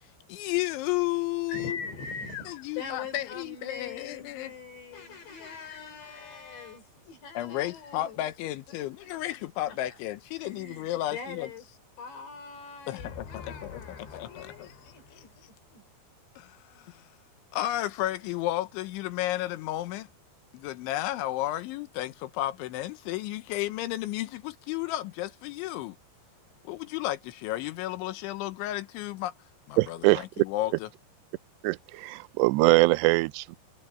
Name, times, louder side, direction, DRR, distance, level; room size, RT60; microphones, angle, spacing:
voice 1, 0.3-1.8 2.5-4.5 5.7-5.8 7.3-11.5 12.9-14.8 16.4-17.1 17.5-20.1 20.5-26.0 26.6-29.3 29.7-30.9, left 15 dB, 90° left, 3.5 m, -33 dB
voice 2, 1.5-8.2 8.8-9.2 9.7-9.8 10.4-11.7 12.0-15.8, left 5 dB, 70° left, 6.4 m, -42 dB
voice 3, 29.8-30.2 31.6-33.6, right 22 dB, 80° right, 2.6 m, -23 dB
omnidirectional pair, 5.3 m